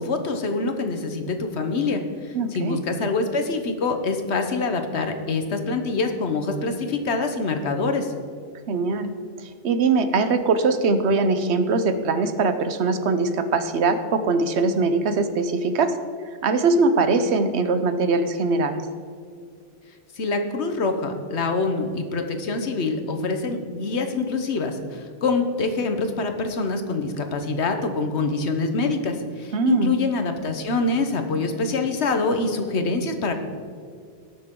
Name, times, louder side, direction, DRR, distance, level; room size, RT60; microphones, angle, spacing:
voice 1, 0.0-8.1 20.2-33.3, left 3 dB, 85° left, 6 dB, 1.3 m, -25 dB
voice 2, 2.3-2.8 8.7-9.1 9.4-16.0 16.4-18.9 29.5-29.9, right 3 dB, 90° right, 10 dB, 1.1 m, -22 dB
18.0 x 6.7 x 3.8 m, 2.2 s
omnidirectional pair, 1.1 m